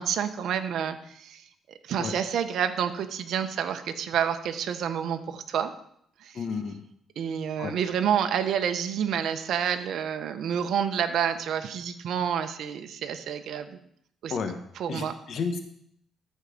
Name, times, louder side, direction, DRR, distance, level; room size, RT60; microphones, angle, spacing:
voice 1, 0.0-1.4 1.8-5.7 6.2-6.4 7.2-13.8 14.2-14.4 14.7-15.2, right 8 dB, 70° right, 8 dB, 0.8 m, -29 dB
voice 2, 6.3-6.8 7.6-7.7 14.3-14.6 14.9-15.6, left 5 dB, 60° left, 6 dB, 1.2 m, -31 dB
13.5 x 4.6 x 5.2 m, 0.70 s
cardioid pair, 90°, 0 cm